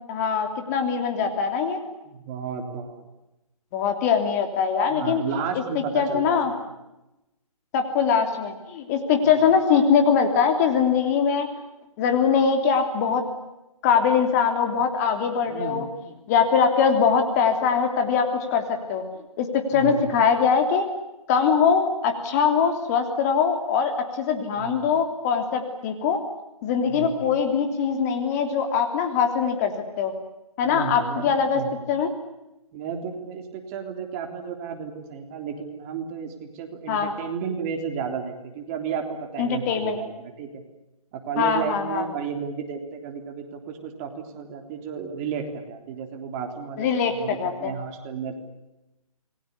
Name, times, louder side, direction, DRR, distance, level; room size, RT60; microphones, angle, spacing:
voice 1, 0.1-1.8 3.7-5.2 5.7-6.5 7.7-11.5 12.0-13.2 13.8-15.9 16.3-19.0 19.4-20.8 21.3-26.2 26.6-29.7 30.0-30.1 30.6-31.6 31.9-32.1 36.9-37.1 39.4-40.0 41.4-42.1 46.8-47.7, left 6 dB, 25° left, 5 dB, 3.2 m, -22 dB
voice 2, 2.0-3.0 4.9-6.4 15.5-15.9 19.7-20.0 24.6-24.8 26.9-27.2 30.6-31.7 32.7-40.6 41.1-48.4, right 6 dB, 25° right, 4 dB, 3.5 m, -33 dB
28.5 x 21.5 x 8.3 m, 0.95 s
hypercardioid pair, 155°, 19 cm